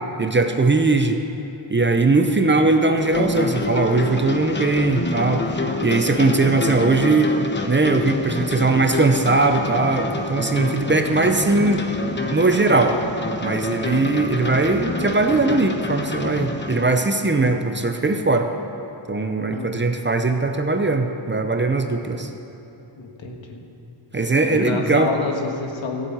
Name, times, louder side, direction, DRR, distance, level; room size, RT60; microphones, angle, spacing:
voice 1, 0.2-1.2 1.7-5.4 5.8-7.3 7.7-11.8 12.3-13.0 13.4-18.5 19.1-22.3 24.1-25.1, right 3 dB, 25° right, 5 dB, 0.7 m, -20 dB
sound 1, 3.0-16.8, left 2 dB, 25° left, 0.9 m, -27 dB
voice 2, 23.0-23.6 24.5-26.1, left 3 dB, 75° left, 2 dB, 1.8 m, -28 dB
15.0 x 8.0 x 8.7 m, 2.9 s
wide cardioid pair, 135°, 46 cm